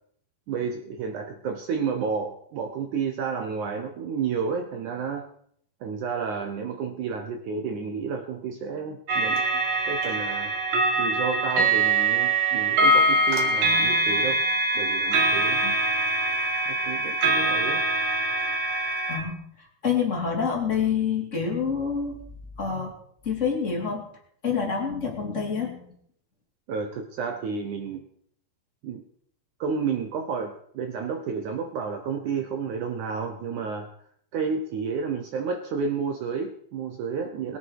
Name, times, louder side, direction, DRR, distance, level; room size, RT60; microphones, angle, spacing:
voice 1, 0.5-5.3 5.8-9.4 9.9-10.5 11.0-14.4 14.7-15.6 16.7-17.8 26.7-28.0 28.8-29.0 29.6-33.9 34.3-37.6, right 5 dB, 70° right, 5 dB, 1.9 m, -31 dB
sound 1, 9.1-19.2, right 2 dB, 50° right, 2.6 m, -23 dB
voice 2, 19.1-19.4 19.8-22.2 22.6-22.9 23.2-24.0 24.4-25.8, left 6 dB, 20° left, -1 dB, 3.0 m, -27 dB
21.5 x 8.6 x 4.8 m, 0.65 s
omnidirectional pair, 4.7 m